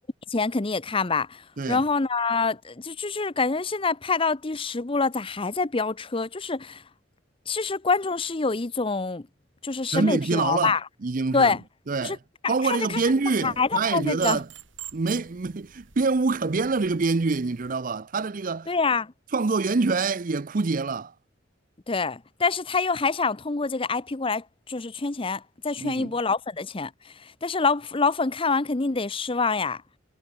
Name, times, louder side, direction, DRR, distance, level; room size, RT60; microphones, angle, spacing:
voice 1, 0.3-6.8 7.5-9.3 9.6-10.8 11.3-11.6 12.0-12.2 12.4-13.0 13.4-14.4 18.7-19.1 21.9-29.8, left 4 dB, 25° left, 0.7 m, -26 dB
voice 2, 9.9-10.7 11.0-11.5 11.9-12.2 12.5-14.5 14.9-18.7 19.3-21.1 25.8-26.1, right 4 dB, 45° right, 0.6 m, -25 dB
sound 1, 12.9-17.7, right 12 dB, 75° right, 6.1 m, -45 dB
head